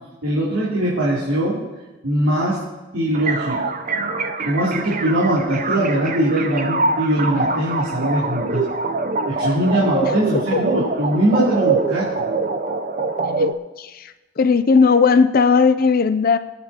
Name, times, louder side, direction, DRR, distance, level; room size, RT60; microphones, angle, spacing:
voice 1, 0.2-1.6 2.0-2.7 2.9-3.6 4.4-8.6 9.3-12.3, right 1 dB, 85° right, -8 dB, 3.2 m, -21 dB
sound 1, 3.1-13.5, right 3 dB, 40° right, 0.6 m, -24 dB
voice 2, 10.0-10.6 13.4-13.5 13.8-16.4, left 5 dB, 45° left, 12 dB, 0.4 m, -17 dB
24.0 x 9.4 x 2.9 m, 1.1 s
head